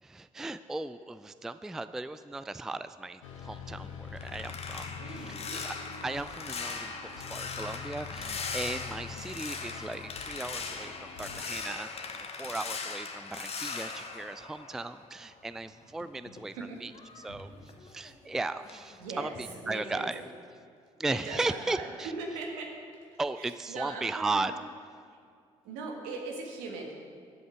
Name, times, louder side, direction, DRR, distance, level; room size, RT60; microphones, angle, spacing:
voice 1, 0.0-5.2 5.6-5.7 6.0-11.9 12.2-16.6 16.8-16.9 17.2-17.5 17.8-19.3 19.7-20.2 21.0-22.1 23.2-24.5, right 2 dB, 5° right, 13 dB, 0.3 m, -36 dB
sound 1, 3.2-11.4, left 6 dB, 75° left, 1.0 m, -45 dB
sound 2, 3.7-15.3 15.6-18.3 18.6-19.0 19.3-19.6, left 4 dB, 40° left, 1.2 m, -40 dB
voice 2, 4.9-5.6 16.5-16.8 17.3-17.4 19.0-20.1 21.1-24.5 25.1-25.2 25.6-26.9, right 3 dB, 70° right, 1 dB, 1.6 m, -40 dB
11.0 x 7.9 x 6.3 m, 2.2 s
figure-of-eight pair, 45°, 16 cm